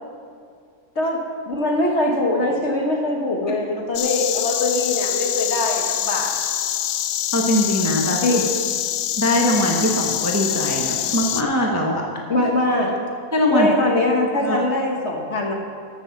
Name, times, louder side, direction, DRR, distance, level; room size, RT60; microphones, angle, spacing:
voice 1, 0.9-6.3 8.2-8.4 12.3-13.0 13.5-15.5, left 2 dB, 45° left, 0 dB, 1.3 m, -22 dB
Insect, 3.9-11.4, left 11 dB, 80° left, 1.2 m, -25 dB
voice 2, 7.3-8.2 9.2-12.0 13.3-13.7 14.4-14.6, left 1 dB, 10° right, -1 dB, 0.9 m, -21 dB
13.5 x 7.1 x 5.9 m, 2.3 s
omnidirectional pair, 1.9 m